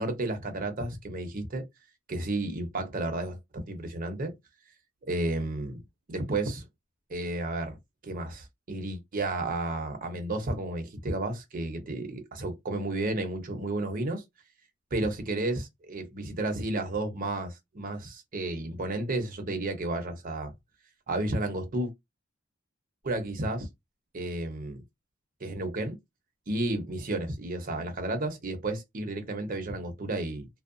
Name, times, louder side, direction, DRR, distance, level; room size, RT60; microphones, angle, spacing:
voice 1, 0.0-1.6 2.1-4.4 5.0-5.8 6.1-6.7 7.1-7.8 8.0-14.2 14.9-20.5 21.1-21.9 23.0-23.7 24.1-24.8 25.4-26.0 26.5-30.5, right 2 dB, 45° right, 0.7 m, -32 dB
2.7 x 2.0 x 2.5 m
head